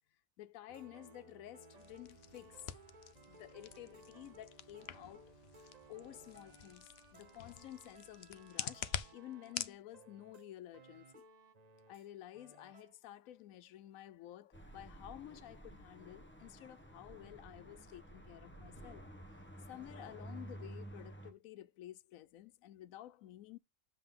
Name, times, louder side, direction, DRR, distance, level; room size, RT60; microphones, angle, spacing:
voice 1, 0.4-2.7 3.3-5.3 5.9-11.2 11.9-19.1 19.7-23.6, left 13 dB, 85° left, 1.0 m, -52 dB
sound 1, 0.7-12.1 12.3-12.9, right 3 dB, 40° right, 0.7 m, -60 dB
sound 2, 1.8-9.8, left 10 dB, 60° left, 0.8 m, -47 dB
sound 3, 14.5-21.3, right 1 dB, 10° left, 0.9 m, -52 dB
7.9 x 5.4 x 3.7 m
omnidirectional pair, 1.4 m